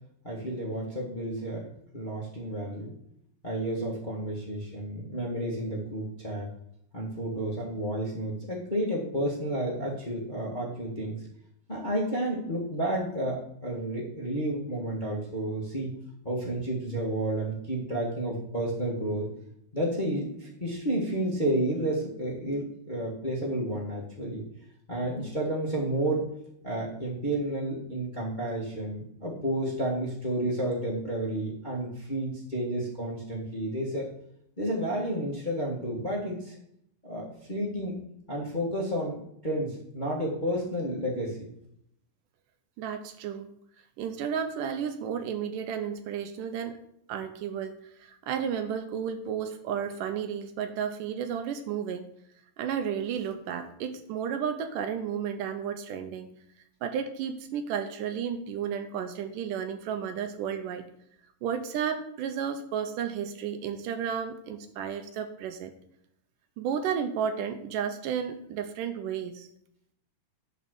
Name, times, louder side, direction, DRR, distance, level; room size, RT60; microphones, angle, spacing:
voice 1, 0.2-1.7 1.9-2.9 3.4-6.5 6.9-11.2 11.7-15.9 16.2-19.3 19.7-24.4 24.9-26.3 26.6-34.1 34.6-36.6 37.0-38.0 38.3-39.2 39.4-41.5, right 1 dB, 70° left, -4 dB, 0.4 m, -31 dB
voice 2, 42.8-43.5 44.0-46.8 47.1-52.1 52.6-56.3 56.8-60.9 61.4-65.7 66.6-69.5, right 8 dB, 75° right, 8 dB, 2.2 m, -32 dB
10.5 x 4.2 x 6.4 m, 0.74 s
omnidirectional pair, 4.0 m